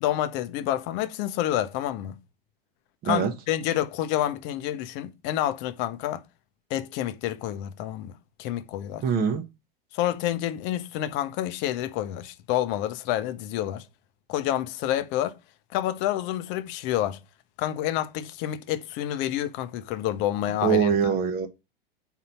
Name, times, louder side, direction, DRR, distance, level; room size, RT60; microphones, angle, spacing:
voice 1, 0.0-2.1 3.0-6.2 6.7-9.0 9.9-13.8 14.3-15.4 15.7-17.2 17.6-21.0, left 12 dB, 40° left, 0.6 m, -28 dB
voice 2, 9.0-9.4 20.6-21.5, right 7 dB, 30° right, 0.9 m, -23 dB
4.5 x 3.9 x 5.6 m
figure-of-eight pair, 95°, 29 cm